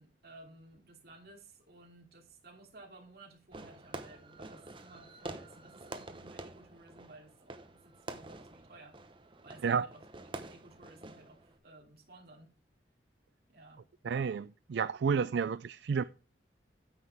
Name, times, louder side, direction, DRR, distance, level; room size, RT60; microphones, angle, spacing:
voice 1, 0.0-9.0 9.4-12.5 13.5-13.9, right 2 dB, 60° right, 2.9 m, -56 dB
Fireworks, 3.5-11.6, right 2 dB, 30° right, 0.9 m, -47 dB
voice 2, 14.0-16.0, right 6 dB, 75° right, 0.4 m, -31 dB
9.5 x 7.9 x 3.5 m
head